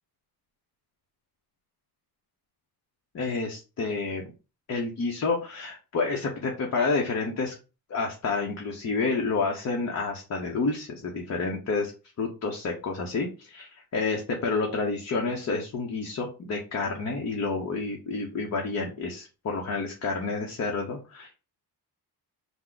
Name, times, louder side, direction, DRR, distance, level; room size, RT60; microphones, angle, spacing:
voice 1, 3.1-4.2 4.7-7.5 7.9-11.9 12.2-21.3, left 4 dB, 45° left, 0 dB, 0.8 m, -29 dB
3.9 x 2.1 x 4.4 m, 0.31 s
cardioid pair, 135°, 38 cm